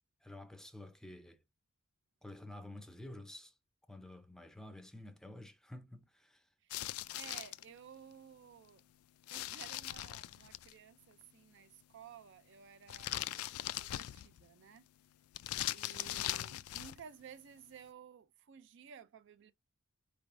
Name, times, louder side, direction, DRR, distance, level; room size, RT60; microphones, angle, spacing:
voice 1, 0.2-1.4 2.2-3.5 3.9-6.5, left 1 dB, ahead, 0.5 m, -50 dB
sound 1, 6.7-7.6 9.3-10.7 12.9-14.4 15.3-17.0, left 14 dB, 80° left, 0.3 m, -40 dB
voice 2, 7.1-8.8 9.3-14.9 15.7-19.5, right 7 dB, 55° right, 0.4 m, -55 dB
5.0 x 3.3 x 2.5 m
head